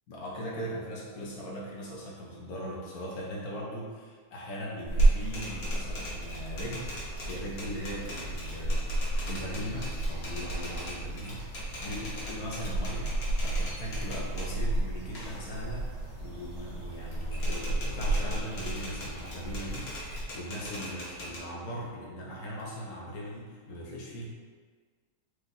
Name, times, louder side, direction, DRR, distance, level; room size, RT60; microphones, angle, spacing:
voice 1, 0.1-13.1 13.4-24.2, equal, 70° left, -4 dB, 1.5 m, -39 dB
sound 1, 4.8-20.2, right 2 dB, 80° right, 1.5 m, -32 dB
Typewriter, 4.9-14.5 15.0-16.8 17.1-21.4, left 1 dB, 45° left, 1.0 m, -42 dB
5.0 x 2.5 x 4.0 m, 1.5 s
omnidirectional pair, 1.7 m